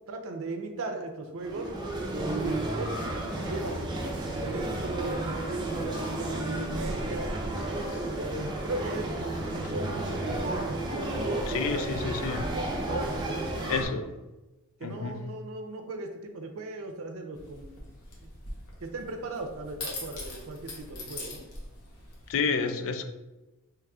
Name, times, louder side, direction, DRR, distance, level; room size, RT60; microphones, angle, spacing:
voice 1, 0.1-1.7 2.2-3.0 3.3-7.3 8.1-13.7 14.8-17.8 18.8-21.4, right 2 dB, 65° right, 4 dB, 0.5 m, -37 dB
sound 1, 1.4-13.8, right 1 dB, 20° right, 0.5 m, -32 dB
voice 2, 7.6-8.0 9.7-9.8 11.5-12.5 13.6-14.1 14.8-15.3 22.3-23.1, left 4 dB, 60° left, 8 dB, 0.4 m, -31 dB
sound 2, 17.3-22.3, left 2 dB, 80° left, 0.9 m, -42 dB
4.8 x 3.2 x 2.3 m, 1.1 s
head